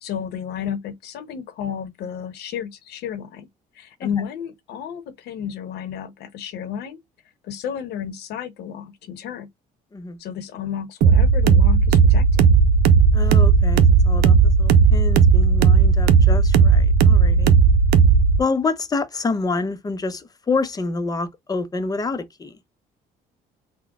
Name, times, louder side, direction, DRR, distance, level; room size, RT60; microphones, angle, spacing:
voice 1, 0.0-3.5 3.7-7.0 7.4-9.5 10.2-12.3, left 8 dB, 75° left, 0.9 m, -32 dB
sound 1, 11.0-18.4, right 5 dB, 75° right, 0.6 m, -15 dB
voice 2, 13.1-17.5 18.4-22.6, left 3 dB, 20° left, 0.7 m, -27 dB
3.8 x 2.2 x 3.4 m
cardioid pair, 110°, 17 cm